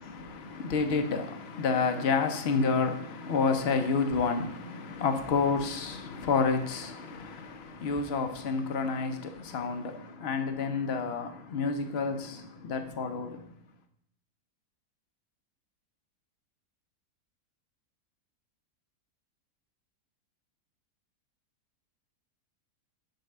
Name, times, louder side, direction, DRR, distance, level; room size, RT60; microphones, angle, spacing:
voice 1, 0.1-13.4, left 4 dB, 50° left, 0.8 m, -29 dB
6.6 x 4.7 x 6.6 m
omnidirectional pair, 1.7 m